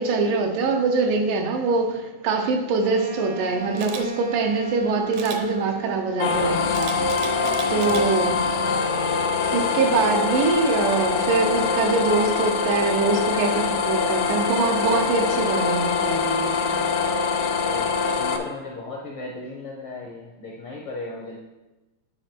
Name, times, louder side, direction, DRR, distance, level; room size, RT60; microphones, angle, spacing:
voice 1, 0.0-6.9 7.7-8.4 9.5-16.8, right 4 dB, 90° right, 4 dB, 2.5 m, -23 dB
Wind instrument woodwind instrument, 2.8-6.3, right 3 dB, 20° right, 0.3 m, -37 dB
Camera, 3.8-4.0 5.1-5.4 6.7-8.0 8.5-8.8, right 6 dB, 70° right, 1.6 m, -35 dB
sound 1, 6.2-18.4, left 5 dB, 90° left, 2.2 m, -24 dB
voice 2, 7.6-8.1 17.4-21.4, left 2 dB, 75° left, -2 dB, 1.2 m, -37 dB
9.5 x 4.9 x 4.5 m, 1.1 s
omnidirectional pair, 3.6 m